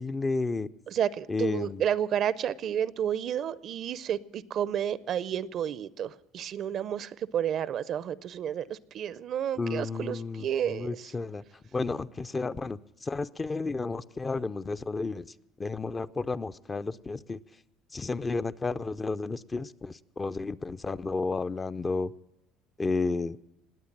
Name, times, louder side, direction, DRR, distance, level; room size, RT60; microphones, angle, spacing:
voice 1, 0.0-0.7 1.3-1.8 9.6-11.4 11.7-15.3 15.6-17.4 17.9-22.1 22.8-23.4, left 3 dB, 25° left, 13 dB, 0.5 m, -32 dB
voice 2, 0.9-11.1, right 9 dB, 50° right, 19 dB, 0.5 m, -31 dB
20.0 x 8.3 x 7.3 m, 0.89 s
supercardioid pair, 80°, 0 cm